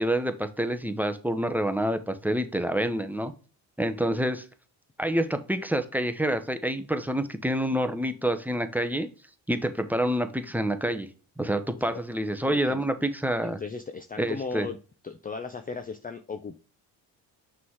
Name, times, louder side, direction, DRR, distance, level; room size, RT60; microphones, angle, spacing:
voice 1, 0.0-3.3 3.8-4.5 5.0-9.1 9.5-11.1 11.4-13.6 14.2-14.7, right 1 dB, 5° right, 8 dB, 0.9 m, -27 dB
voice 2, 13.4-14.8 15.0-16.6, left 5 dB, 15° left, 7 dB, 0.6 m, -36 dB
5.9 x 3.7 x 4.7 m, 0.36 s
supercardioid pair, 65°, 49 cm